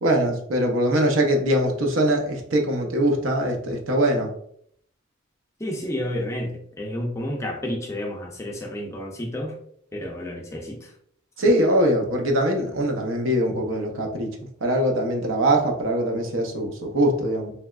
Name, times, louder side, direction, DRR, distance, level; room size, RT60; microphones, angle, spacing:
voice 1, 0.0-4.3 11.4-14.3 14.6-17.5, right 1 dB, 80° right, 2 dB, 0.6 m, -22 dB
voice 2, 5.6-9.6 9.9-10.9, left 1 dB, 15° left, 0 dB, 0.5 m, -30 dB
3.3 x 2.9 x 2.3 m, 0.68 s
head